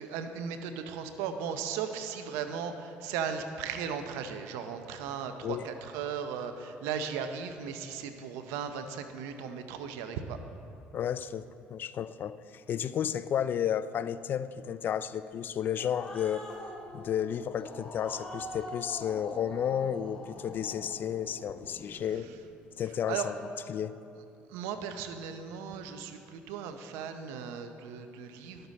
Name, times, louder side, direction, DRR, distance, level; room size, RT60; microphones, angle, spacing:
voice 1, 0.0-10.4 21.9-22.4 23.1-23.3 24.5-28.7, right 7 dB, 85° right, 0.7 m, -37 dB
voice 2, 10.9-16.5 16.9-22.3 22.8-23.3 23.7-24.0, left 9 dB, 50° left, 0.3 m, -32 dB
Growling, 15.5-22.3, left 1 dB, 15° left, 1.6 m, -44 dB
11.5 x 6.6 x 4.1 m
supercardioid pair, 85°, 4 cm